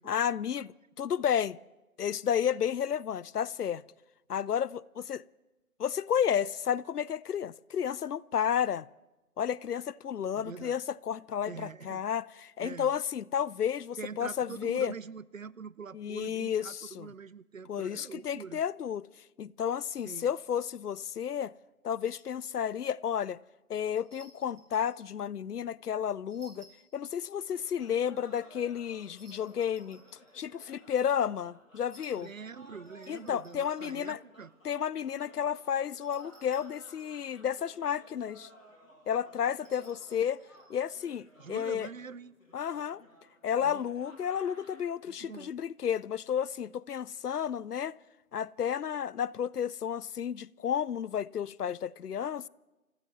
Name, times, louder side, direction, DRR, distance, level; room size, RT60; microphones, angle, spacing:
voice 1, 0.1-1.6 2.0-3.8 4.3-5.2 5.8-8.9 9.4-14.9 15.9-17.1 17.7-19.1 19.4-21.5 21.8-23.4 23.7-30.0 30.3-32.3 33.1-34.2 34.6-38.5 39.1-40.4 40.7-41.9 42.5-43.0 43.4-48.0 48.3-52.5, left 8 dB, 90° left, 0.6 m, -32 dB
voice 2, 10.3-10.8 11.4-12.0 12.6-12.9 14.0-18.6 20.0-20.3 32.2-34.5 41.4-42.3 43.6-43.8 45.1-45.6, right 6 dB, 60° right, 0.5 m, -44 dB
sound 1, 22.0-22.4 24.0-25.0 26.3-27.6 29.0-30.9 31.9-33.8 35.9-37.2 39.5-40.8, right 2 dB, 40° right, 2.8 m, -60 dB
sound 2, 27.5-44.8, equal, 60° left, 7.5 m, -57 dB
29.5 x 16.0 x 3.1 m
figure-of-eight pair, 175°, 45 cm